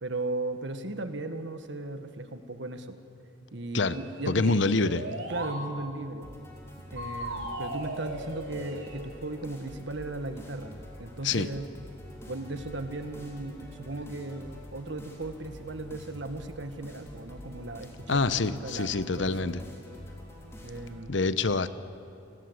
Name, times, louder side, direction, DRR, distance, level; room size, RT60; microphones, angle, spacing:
voice 1, 0.0-3.0 3.5-4.6 5.3-6.5 6.9-11.6 12.3-19.4 20.6-21.1, right 2 dB, 65° right, 8 dB, 1.7 m, -37 dB
sound 1, 3.8-5.6 7.0-9.0, right 1 dB, 80° right, 4.1 m, -38 dB
voice 2, 4.3-5.0 11.2-11.5 18.1-19.6 21.1-21.7, left 3 dB, 70° left, 13 dB, 0.9 m, -26 dB
sound 2, 6.2-21.0, left 1 dB, 15° left, 3.9 m, -47 dB
30.0 x 20.0 x 8.2 m, 2.6 s
head